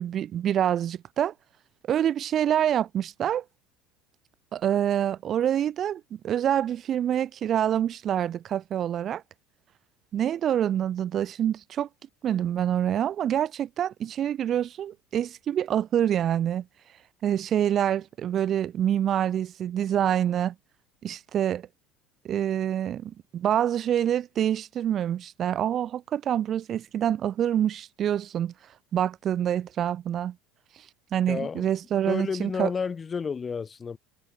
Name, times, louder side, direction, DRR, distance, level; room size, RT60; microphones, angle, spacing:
voice 1, 0.0-1.3 1.9-3.4 4.5-9.2 10.1-11.9 12.2-16.6 17.2-20.5 21.0-21.7 22.2-28.5 28.9-30.3 30.7-30.9 31.1-32.7, right 10 dB, 45° right, 0.4 m, -26 dB
voice 2, 31.3-31.7 32.0-34.0, left 5 dB, 25° left, 2.3 m, -31 dB
supercardioid pair, 105°, 0 cm